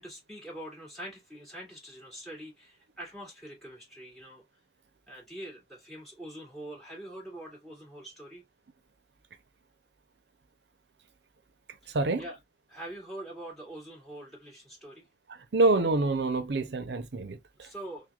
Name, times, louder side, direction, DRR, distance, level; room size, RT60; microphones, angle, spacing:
voice 1, 0.0-4.4 5.1-8.4 11.8-12.4 12.7-15.1 17.6-18.1, right 1 dB, ahead, 2.2 m, -44 dB
voice 2, 15.5-17.7, right 2 dB, 75° right, 0.7 m, -26 dB
5.9 x 2.2 x 2.4 m
head